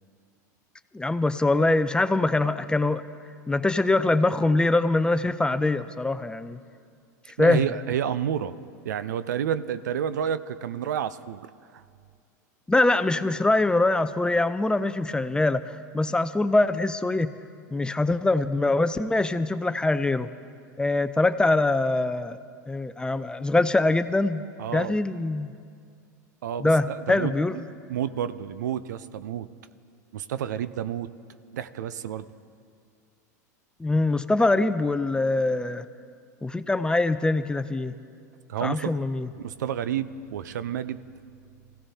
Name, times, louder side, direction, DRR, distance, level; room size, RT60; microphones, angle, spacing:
voice 1, 0.9-3.0 3.5-6.6 7.4-7.6 12.7-17.3 17.7-20.3 20.8-22.4 22.7-24.5 24.7-25.5 26.6-27.6 33.8-35.8 36.4-37.9 38.6-39.3, left 2 dB, 10° left, 12 dB, 0.5 m, -23 dB
voice 2, 7.4-8.5 8.8-11.4 11.7-11.8 24.6-25.0 26.4-27.3 27.9-29.5 30.1-31.1 31.5-32.3 38.5-38.9 39.4-41.0, right 9 dB, 80° right, 14 dB, 0.6 m, -30 dB
23.5 x 16.0 x 2.8 m, 2.2 s
hypercardioid pair, 95°, 10 cm